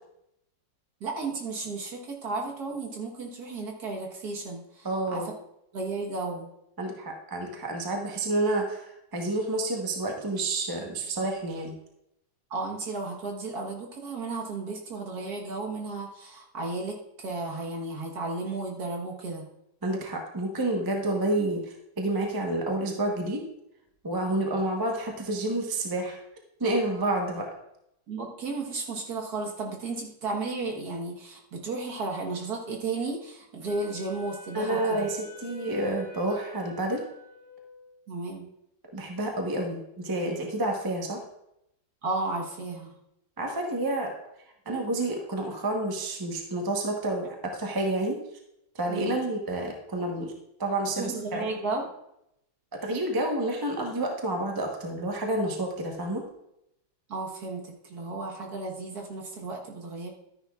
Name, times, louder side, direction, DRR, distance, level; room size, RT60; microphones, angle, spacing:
voice 1, 1.0-4.9 5.1-5.3 5.7-6.5 12.5-19.5 28.1-35.1 38.1-38.5 42.0-42.9 48.9-49.2 51.0-51.9 57.1-60.1, right 3 dB, 55° right, -1 dB, 1.7 m, -34 dB
voice 2, 4.8-5.3 6.8-11.7 19.8-23.4 24.0-26.2 26.6-27.5 34.5-37.0 38.9-41.2 43.4-44.1 44.6-48.2 48.7-50.3 50.6-51.5 52.8-56.2, right 1 dB, 15° right, 1 dB, 0.7 m, -29 dB
Wind instrument woodwind instrument, 33.7-38.0, equal, 25° left, 2.5 m, -47 dB
12.5 x 9.8 x 2.4 m, 0.82 s
omnidirectional pair, 2.1 m